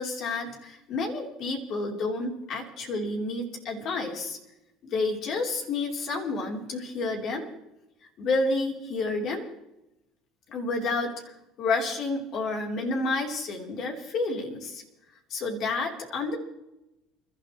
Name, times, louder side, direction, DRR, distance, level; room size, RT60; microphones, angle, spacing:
voice 1, 0.0-4.4 4.8-7.5 8.2-9.5 10.5-14.8 15.3-16.4, left 3 dB, 55° left, 1 dB, 3.7 m, -30 dB
30.0 x 12.5 x 3.2 m, 0.90 s
supercardioid pair, 100°, 0 cm